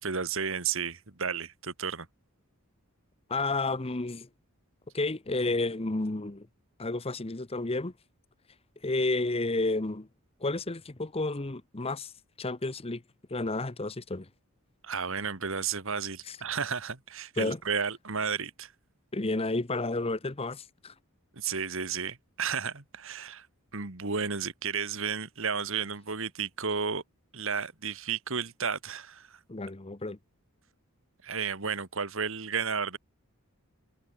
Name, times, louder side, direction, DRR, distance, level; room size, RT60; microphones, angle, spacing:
voice 1, 0.0-2.1 14.8-18.7 21.3-23.5 23.7-27.0 27.3-29.4 31.2-33.0, right 6 dB, 60° right, 2.1 m, -32 dB
voice 2, 3.3-4.3 4.9-6.5 6.8-7.9 8.8-10.1 10.4-12.1 12.4-13.0 13.3-14.3 16.3-16.4 17.4-17.6 19.1-20.9 29.5-30.2, left 2 dB, 25° left, 0.9 m, -31 dB
head